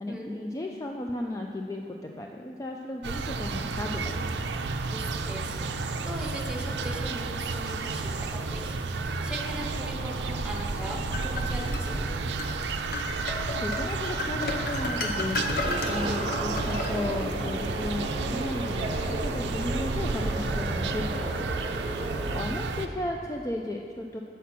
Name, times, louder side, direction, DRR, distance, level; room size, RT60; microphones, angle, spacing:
voice 1, 0.0-4.3 13.6-21.5 22.0-24.2, left 1 dB, 20° left, 1 dB, 0.3 m, -35 dB
sound 1, 3.0-22.9, right 3 dB, 75° right, 0.4 m, -31 dB
voice 2, 4.8-12.1 19.6-19.7, right 1 dB, 5° right, -1 dB, 0.9 m, -39 dB
sound 2, 10.6-11.9 12.4-12.6 12.9-17.4, left 2 dB, 55° left, 0.8 m, -33 dB
sound 3, 15.6-22.4, right 1 dB, 30° right, 0.8 m, -35 dB
8.3 x 5.7 x 5.9 m, 2.4 s
head